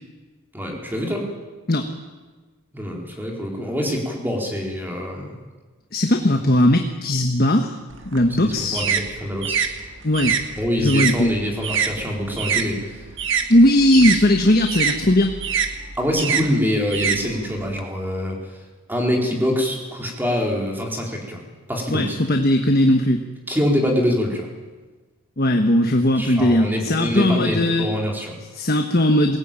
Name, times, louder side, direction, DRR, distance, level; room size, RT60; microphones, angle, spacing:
voice 1, 0.5-1.3 2.7-5.3 8.4-9.6 10.6-13.0 15.9-18.6 18.9-22.2 23.5-24.5 26.2-28.4, equal, 10° right, 0 dB, 4.2 m, -25 dB
voice 2, 5.9-7.8 8.0-8.8 10.0-10.4 10.8-11.3 13.5-15.3 21.9-23.2 25.4-27.9 28.5-29.4, left 1 dB, 45° left, 4 dB, 1.4 m, -18 dB
sound 1, 7.9-12.7 13.0-17.8, right 7 dB, 55° right, 1.8 m, -25 dB
22.0 x 18.5 x 9.1 m, 1.3 s
head